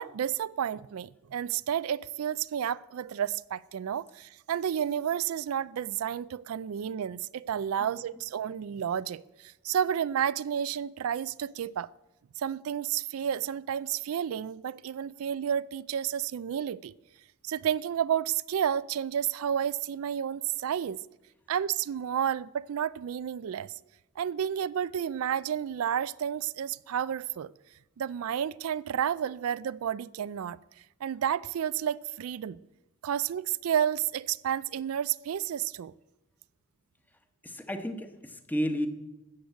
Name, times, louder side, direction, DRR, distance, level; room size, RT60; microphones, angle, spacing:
voice 1, 0.0-11.9 12.4-16.9 17.4-21.0 21.5-23.7 24.2-27.5 28.0-30.6 31.0-32.6 33.0-35.9, right 9 dB, 85° right, 0.4 m, -31 dB
voice 2, 37.4-38.9, equal, 10° left, 1.1 m, -32 dB
13.5 x 7.9 x 8.0 m
head